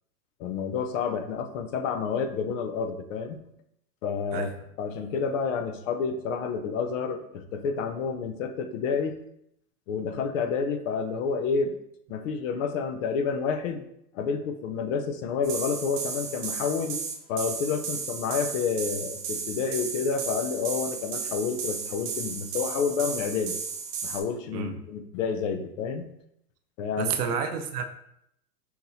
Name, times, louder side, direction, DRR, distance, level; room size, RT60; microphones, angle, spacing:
voice 1, 0.4-3.4 4.0-4.5 4.8-9.2 9.9-11.7 12.1-13.8 14.1-17.0 17.3-23.6 24.0-26.1 26.8-27.3, left 5 dB, 55° left, 7 dB, 0.6 m, -29 dB
voice 2, 4.3-4.7 24.5-24.8 27.0-27.8, right 7 dB, 85° right, 6 dB, 0.7 m, -30 dB
sound 1, 15.4-24.2, right 5 dB, 20° right, 0.4 m, -34 dB
5.8 x 2.8 x 2.7 m, 0.76 s
hypercardioid pair, 120°, 46 cm